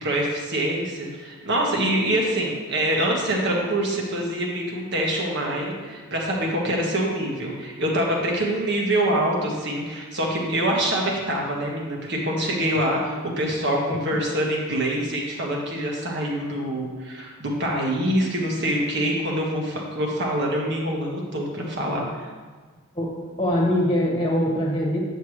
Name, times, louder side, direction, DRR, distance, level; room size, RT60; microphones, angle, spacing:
voice 1, 0.0-22.3, right 1 dB, 55° right, -2 dB, 1.6 m, -25 dB
voice 2, 22.9-25.0, equal, 20° left, -2 dB, 1.5 m, -23 dB
9.3 x 6.9 x 3.2 m, 1.4 s
head